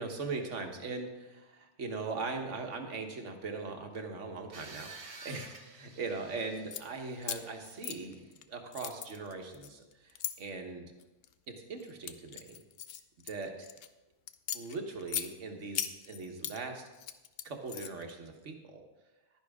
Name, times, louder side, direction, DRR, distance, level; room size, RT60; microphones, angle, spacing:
voice 1, 0.0-10.9 11.5-12.6 13.2-13.7 14.5-16.9 17.4-18.8, right 4 dB, 85° right, 4 dB, 1.5 m, -40 dB
sound 1, 4.5-8.3, right 4 dB, 65° right, 1.3 m, -51 dB
sound 2, 6.5-6.8 7.2-8.4 8.7-10.3 11.0-11.3 11.8-13.9 14.3-15.3 15.7-16.6 16.9-18.1, left 10 dB, 65° left, 0.7 m, -38 dB
11.0 x 10.5 x 3.6 m, 1.1 s
omnidirectional pair, 1.2 m